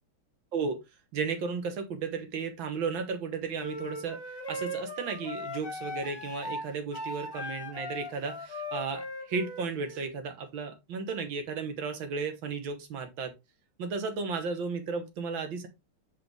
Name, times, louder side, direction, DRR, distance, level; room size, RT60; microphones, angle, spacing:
voice 1, 1.1-4.2 4.5-13.3 13.8-15.7, right 5 dB, 65° right, 7 dB, 1.9 m, -34 dB
sound 1, 3.6-10.1, left 1 dB, 15° left, 1.2 m, -39 dB
5.4 x 5.2 x 3.4 m, 0.22 s
omnidirectional pair, 2.4 m